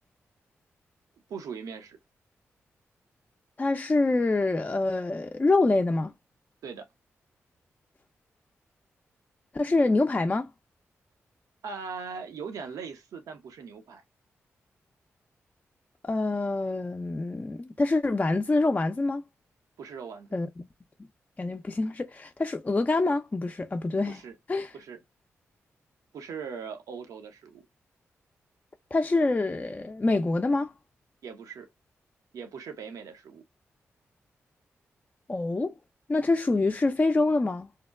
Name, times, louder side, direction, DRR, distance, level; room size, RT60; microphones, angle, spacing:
voice 1, 1.3-2.0 6.6-6.9 11.6-14.0 19.8-20.4 24.0-24.3 24.7-25.0 26.1-27.6 31.2-31.7 32.3-33.4, right 6 dB, 80° right, 0.6 m, -40 dB
voice 2, 3.6-6.1 9.5-10.5 16.0-19.2 20.3-20.6 21.4-24.2 24.5-24.7 28.9-30.7 35.3-35.7 36.1-37.7, left 2 dB, 25° left, 0.4 m, -26 dB
2.8 x 2.1 x 2.2 m
supercardioid pair, 40°, 6 cm